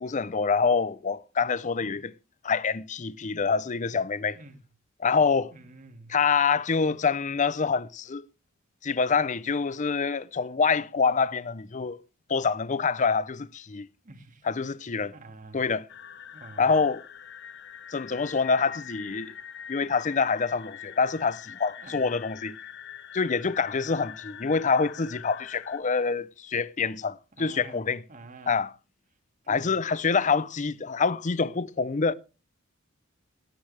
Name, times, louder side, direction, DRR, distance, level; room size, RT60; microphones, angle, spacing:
voice 1, 0.0-2.1 2.4-4.4 5.0-5.5 6.1-8.3 8.8-12.0 12.3-13.9 14.5-15.1 15.5-15.8 16.6-17.0 17.9-19.3 19.7-22.6 23.1-28.0 28.5-28.7 29.5-32.1, left 5 dB, 35° left, 0.6 m, -26 dB
voice 2, 5.5-6.2 14.0-14.5 15.1-15.7 16.3-16.8 21.8-22.1 27.3-28.6 29.4-29.8, right 2 dB, 40° right, 2.1 m, -48 dB
sound 1, 15.9-25.8, left 8 dB, 55° left, 1.0 m, -44 dB
17.5 x 9.8 x 3.3 m
head